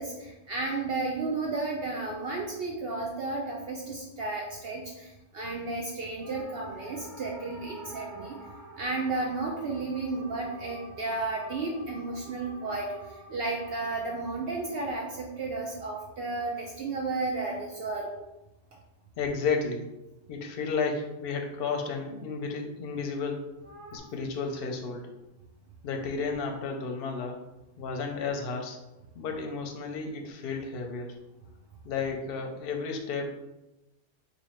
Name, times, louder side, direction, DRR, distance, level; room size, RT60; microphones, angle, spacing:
voice 1, 0.0-8.4 8.8-18.1, right 3 dB, 60° right, -1 dB, 0.7 m, -33 dB
sound 1, 6.2-16.7 23.6-24.0, right 1 dB, 20° right, 0.6 m, -49 dB
voice 2, 19.2-19.9 20.3-23.5 23.9-25.2 25.8-27.4 27.8-28.8 29.1-31.2 31.8-33.3, left 4 dB, 60° left, 3 dB, 0.7 m, -32 dB
3.0 x 2.7 x 4.2 m, 0.98 s
omnidirectional pair, 1.2 m